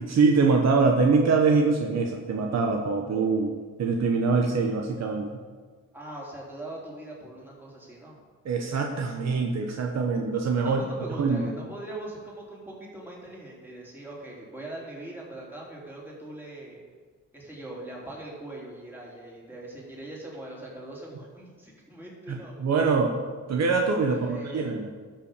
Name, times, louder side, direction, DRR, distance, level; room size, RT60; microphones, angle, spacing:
voice 1, 0.0-3.5 3.8-5.3 8.4-10.8 11.2-11.5 22.3-23.1 23.5-24.9, right 4 dB, 60° right, 2 dB, 1.3 m, -24 dB
voice 2, 5.9-8.2 10.6-16.8 17.3-22.5 24.1-24.7, right 1 dB, 5° right, -4 dB, 3.9 m, -41 dB
12.0 x 5.8 x 6.8 m, 1.5 s
cardioid pair, 90°, 30 cm